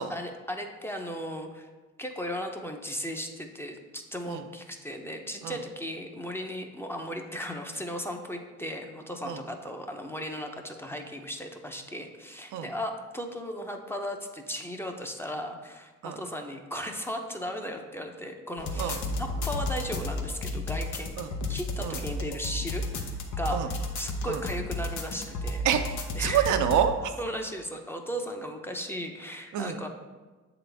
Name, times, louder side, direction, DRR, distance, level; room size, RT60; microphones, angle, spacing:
voice 1, 0.1-1.7 2.0-21.2 21.5-25.7 26.1-26.5 27.2-29.9, equal, 10° left, 3 dB, 0.6 m, -36 dB
sound 1, 18.6-26.8, left 2 dB, 75° left, 0.8 m, -32 dB
voice 2, 25.6-27.1 29.5-29.8, right 9 dB, 80° right, 7 dB, 0.5 m, -27 dB
7.1 x 3.9 x 3.4 m, 1.3 s
cardioid pair, 90°, 30 cm